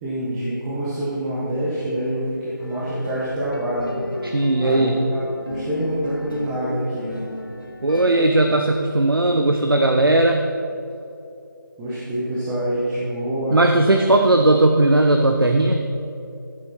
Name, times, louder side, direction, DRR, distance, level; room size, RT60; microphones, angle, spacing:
voice 1, 0.0-3.9 4.6-7.2 11.8-13.6, right 1 dB, 10° right, -10 dB, 1.0 m, -26 dB
sound 1, 2.6-8.5, left 2 dB, 70° left, 1.3 m, -34 dB
voice 2, 4.2-4.9 7.8-10.4 13.5-15.9, right 2 dB, 80° right, 4 dB, 0.8 m, -17 dB
14.0 x 7.8 x 4.3 m, 2.7 s
figure-of-eight pair, 160°, 12 cm